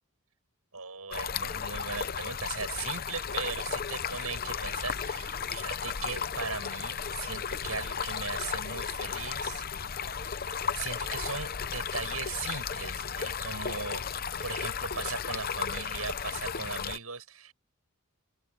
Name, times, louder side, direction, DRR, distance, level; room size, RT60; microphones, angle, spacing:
voice 1, 0.7-9.7 10.3-17.5, right 5 dB, 75° right, 7.9 m, -38 dB
Stream, 1.1-17.0, left 6 dB, 45° left, 0.7 m, -34 dB
open air
head